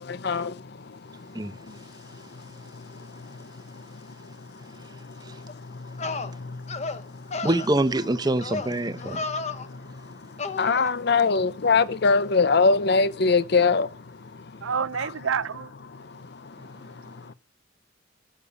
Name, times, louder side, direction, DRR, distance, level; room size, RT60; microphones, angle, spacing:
voice 1, 0.0-1.8 2.1-4.0 4.6-7.4 9.4-14.3 16.0-17.3, left 4 dB, 55° left, 0.6 m, -26 dB
sound 1, 5.5-5.6 6.0-6.3 6.7-7.0 7.3-7.7 8.4-8.7 9.0-9.7 10.4-10.9, left 3 dB, 35° left, 1.0 m, -32 dB
voice 2, 7.4-9.3, right 1 dB, 20° right, 0.8 m, -25 dB
voice 3, 14.6-15.7, right 6 dB, 90° right, 0.6 m, -28 dB
12.5 x 6.7 x 6.8 m
head